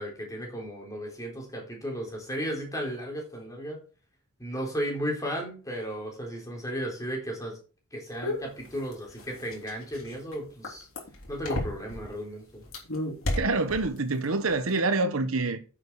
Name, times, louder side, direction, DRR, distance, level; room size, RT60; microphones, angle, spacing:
voice 1, 0.0-3.8 4.4-7.5 7.9-10.9 11.3-12.6, equal, 15° left, 4.0 m, -34 dB
sound 1, 8.2-12.1 12.6-14.2 14.5-14.8, left 1 dB, 70° left, 3.6 m, -32 dB
voice 2, 13.4-15.6, right 3 dB, 70° right, 1.1 m, -26 dB
9.7 x 7.7 x 4.8 m
head